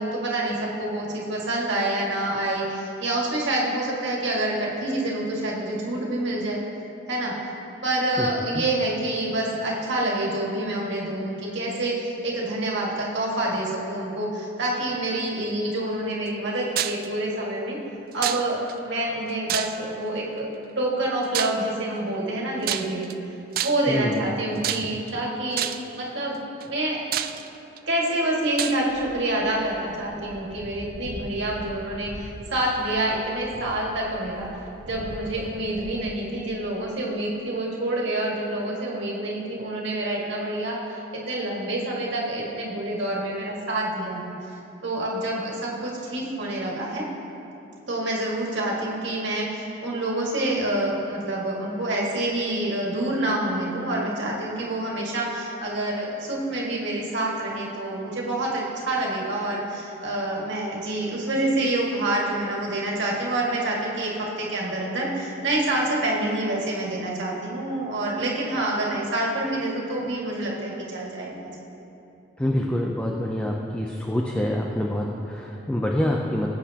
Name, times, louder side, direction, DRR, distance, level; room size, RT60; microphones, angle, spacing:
voice 1, 0.0-6.6 7.1-7.3 7.8-17.8 18.1-20.5 20.8-23.1 23.6-25.7 26.0-26.4 26.6-27.0 27.9-34.5 34.9-44.3 44.8-47.0 47.9-71.5, right 1 dB, 70° right, -3 dB, 1.9 m, -27 dB
sound 1, 16.8-17.1 18.2-18.7 19.5-20.0 21.3-21.7 22.6-23.1 23.5-24.0 24.6-25.1 25.6-25.9 26.6-26.7 27.1-27.8 28.6-28.8, right 11 dB, 50° right, 0.3 m, -28 dB
voice 2, 23.9-24.3 24.8-24.9 72.4-76.5, left 1 dB, 5° left, -1 dB, 0.5 m, -26 dB
sound 2, 28.5-35.9, equal, 25° left, 2.5 m, -42 dB
18.0 x 8.3 x 2.9 m, 2.8 s
head